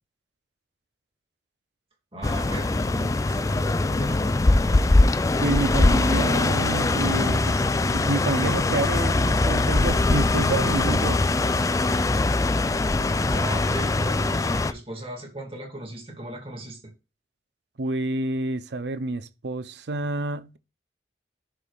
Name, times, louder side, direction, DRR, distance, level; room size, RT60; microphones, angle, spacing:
voice 1, 2.1-4.2 13.3-16.8, right 1 dB, 30° right, 2.0 m, -37 dB
sound 1, 2.2-14.7, left 2 dB, 20° left, 0.3 m, -22 dB
voice 2, 5.4-11.2 17.8-20.6, right 2 dB, 70° right, 0.6 m, -28 dB
11.0 x 5.1 x 2.4 m
head